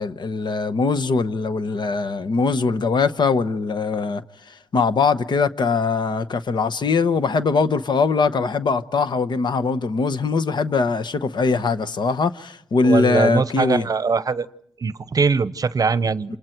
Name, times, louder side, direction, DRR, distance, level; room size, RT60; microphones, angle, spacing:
voice 1, 0.0-4.2 4.7-13.8 16.3-16.4, left 4 dB, 60° left, 1.0 m, -21 dB
voice 2, 12.8-14.5 14.8-16.4, right 5 dB, 45° right, 0.8 m, -21 dB
28.0 x 27.5 x 4.6 m
cardioid pair, 85°, 9 cm